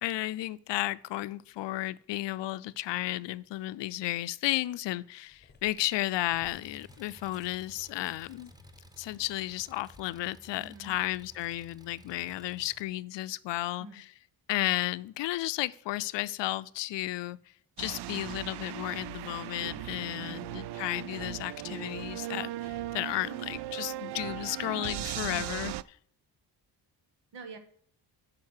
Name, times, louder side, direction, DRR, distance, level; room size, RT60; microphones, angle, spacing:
voice 1, 0.0-8.5 9.0-13.9 14.5-17.4 17.8-25.7, left 16 dB, 80° left, 0.5 m, -33 dB
Cat, 5.1-10.1, left 4 dB, 25° left, 1.1 m, -59 dB
Engine, 6.4-12.8, right 1 dB, 10° right, 1.1 m, -56 dB
voice 2, 10.6-10.9 13.8-14.0 20.2-20.4 25.2-25.5 27.3-27.6, right 3 dB, 85° right, 1.6 m, -46 dB
sound 1, 17.8-25.8, right 13 dB, 70° right, 0.5 m, -38 dB
9.4 x 5.3 x 6.5 m
cardioid pair, 85°, 42 cm